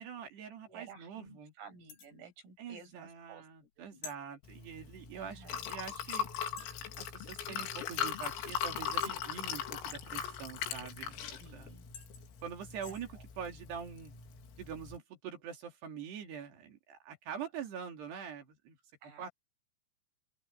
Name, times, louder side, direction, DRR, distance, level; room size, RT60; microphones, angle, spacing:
voice 1, 0.0-1.5 2.6-6.3 7.0-11.2 11.5-11.7 12.4-14.1 14.6-18.8 19.2-19.3, right 7 dB, 55° right, 4.9 m, -44 dB
voice 2, 0.6-3.5 3.8-4.0 5.1-5.7 11.4-12.0 12.9-13.3 19.0-19.3, right 6 dB, 85° right, 9.4 m, -54 dB
sound 1, 1.9-2.2 4.0-4.2 5.6-5.7 6.6-6.9 9.0-9.4 11.4-11.5 11.9-13.0, left 7 dB, 60° left, 6.8 m, -50 dB
Liquid, 4.4-15.0, left 8 dB, 90° left, 5.4 m, -40 dB
open air
omnidirectional pair, 5.9 m